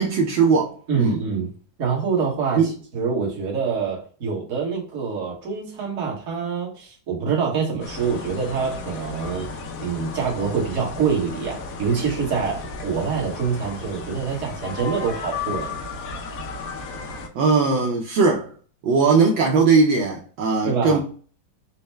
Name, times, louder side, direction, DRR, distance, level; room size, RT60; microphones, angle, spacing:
voice 1, 0.0-1.2 2.6-2.7 17.3-18.5 18.8-21.0, right 4 dB, 75° right, 1.3 m, -19 dB
voice 2, 0.9-1.5 1.8-15.7 20.6-21.0, right 5 dB, 45° right, 1.3 m, -25 dB
sound 1, 7.8-17.3, left 4 dB, 90° left, 0.7 m, -34 dB
4.2 x 2.1 x 3.2 m
omnidirectional pair, 2.3 m